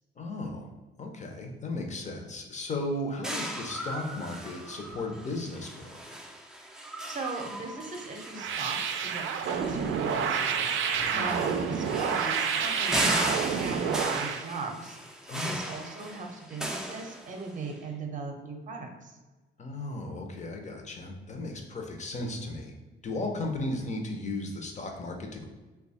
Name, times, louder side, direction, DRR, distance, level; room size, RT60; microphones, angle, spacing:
voice 1, 0.2-0.7 1.0-6.2 11.1-11.6 15.3-15.6 19.6-22.7 23.0-25.5, left 2 dB, 35° left, 3 dB, 0.7 m, -35 dB
sound 1, 3.2-17.7, right 1 dB, 5° right, 0.4 m, -37 dB
voice 2, 7.1-10.8 11.1-15.0 15.4-19.2, right 3 dB, 40° right, 3 dB, 0.7 m, -38 dB
sound 2, 8.4-14.4, right 7 dB, 75° right, 0.4 m, -29 dB
3.0 x 2.3 x 4.1 m, 1.2 s
cardioid pair, 90°, 20 cm